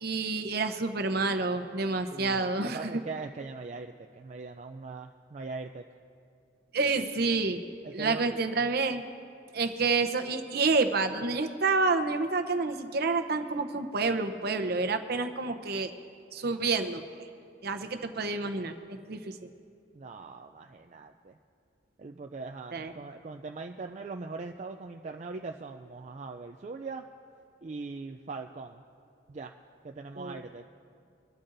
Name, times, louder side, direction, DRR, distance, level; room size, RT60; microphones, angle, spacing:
voice 1, 0.0-2.9 6.7-7.6 7.9-9.0 9.5-15.9 16.3-17.3 17.6-19.5 22.7-22.9 30.2-30.4, right 3 dB, 55° right, 7 dB, 0.8 m, -29 dB
voice 2, 2.1-5.8 7.8-8.4 19.9-21.4 22.0-27.1 27.6-28.8 29.3-29.5 29.8-30.6, right 3 dB, 40° right, 4 dB, 0.4 m, -41 dB
23.5 x 12.5 x 2.6 m, 2.4 s
head